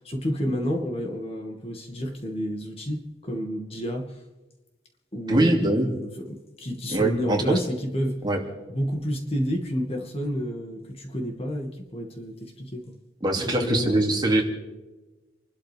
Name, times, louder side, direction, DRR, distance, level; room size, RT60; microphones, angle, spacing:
voice 1, 0.0-4.2 5.1-8.2 8.7-12.9 13.4-14.1, equal, 35° left, 2 dB, 2.1 m, -30 dB
voice 2, 5.3-5.9 6.9-7.4 8.2-8.4 13.2-14.4, right 1 dB, 25° right, 0 dB, 2.7 m, -22 dB
30.0 x 12.5 x 3.5 m, 1.1 s
head